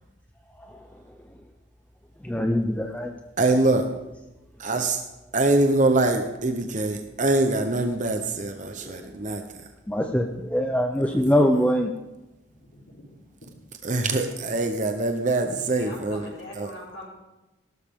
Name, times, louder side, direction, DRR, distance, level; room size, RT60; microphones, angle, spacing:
voice 1, 0.5-1.2 2.2-3.2 8.8-9.3 9.9-11.9, equal, 5° left, 4 dB, 0.6 m, -24 dB
voice 2, 3.4-3.8 4.6-5.0 5.3-9.4 13.8-16.2 16.6-16.7, right 2 dB, 40° right, 5 dB, 0.9 m, -23 dB
voice 3, 12.6-13.1 13.4-13.5 15.7-17.1, left 1 dB, 80° left, -7 dB, 3.8 m, -42 dB
17.5 x 12.0 x 3.7 m, 1.0 s
head